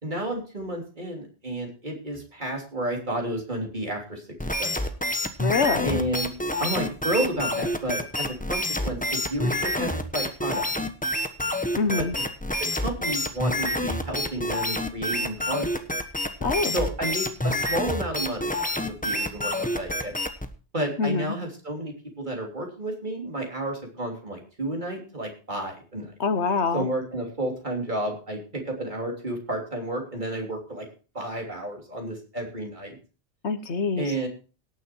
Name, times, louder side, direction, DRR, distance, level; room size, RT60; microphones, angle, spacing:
voice 1, 0.0-4.9 5.8-6.3 6.6-10.7 12.0-12.1 12.6-15.7 16.7-20.1 20.7-26.1 26.7-30.9 31.1-33.0 34.0-34.3, right 1 dB, 45° right, 1 dB, 3.4 m, -31 dB
sound 1, 4.4-20.5, left 1 dB, 10° left, 1.1 m, -28 dB
voice 2, 5.4-6.0 11.8-12.1 16.4-16.7 21.0-21.3 26.2-26.9 33.4-34.1, left 4 dB, 85° left, 11 dB, 1.5 m, -25 dB
18.0 x 6.9 x 4.5 m, 0.35 s
omnidirectional pair, 1.1 m